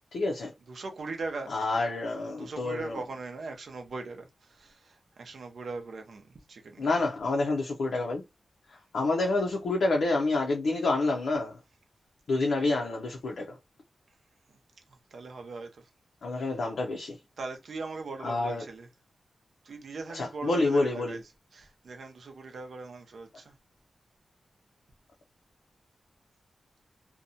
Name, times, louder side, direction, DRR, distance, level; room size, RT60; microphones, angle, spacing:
voice 1, 0.1-0.5 1.5-3.0 6.8-8.2 8.7-11.6 12.3-13.6 16.2-17.2 18.2-18.6 20.1-21.2, left 2 dB, 75° left, 0.5 m, -28 dB
voice 2, 0.7-1.5 2.2-6.9 14.9-15.9 16.3-16.6 17.4-18.9 19.6-21.2 21.5-23.5, right 3 dB, 65° right, 0.5 m, -40 dB
2.7 x 2.2 x 2.6 m
wide cardioid pair, 150°, 0 cm